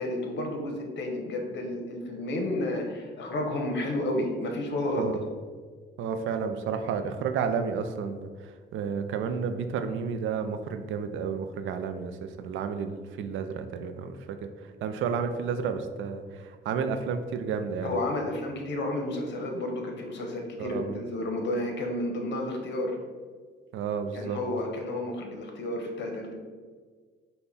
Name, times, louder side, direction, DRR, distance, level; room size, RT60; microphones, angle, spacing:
voice 1, 0.0-5.1 17.8-23.0 24.1-26.3, left 1 dB, 65° left, 2 dB, 0.9 m, -31 dB
voice 2, 6.0-18.0 20.6-20.9 23.7-24.4, right 6 dB, 80° right, 8 dB, 0.4 m, -31 dB
5.4 x 2.2 x 4.0 m, 1.6 s
cardioid pair, 90°, 20 cm